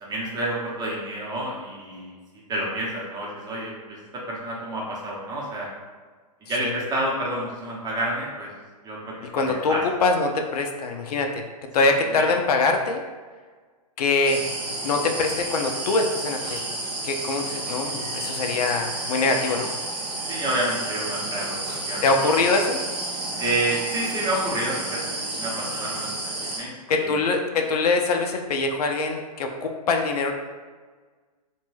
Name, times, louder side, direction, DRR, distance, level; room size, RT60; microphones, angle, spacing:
voice 1, 0.0-2.2 2.5-5.7 6.4-8.5 8.8-9.8 11.8-11.9 12.2-12.3 20.3-22.1 23.4-25.0 25.4-26.1 26.4-27.2, right 1 dB, 20° right, -4 dB, 0.7 m, -29 dB
voice 2, 9.3-11.4 11.7-13.0 14.0-14.4 14.8-16.6 17.0-19.7 22.0-22.8 26.9-30.3, left 3 dB, 70° left, 4 dB, 0.4 m, -23 dB
sound 1, 14.2-26.6, right 2 dB, 80° right, 0.9 m, -31 dB
2.5 x 2.2 x 3.1 m, 1.5 s
hypercardioid pair, 120°, 21 cm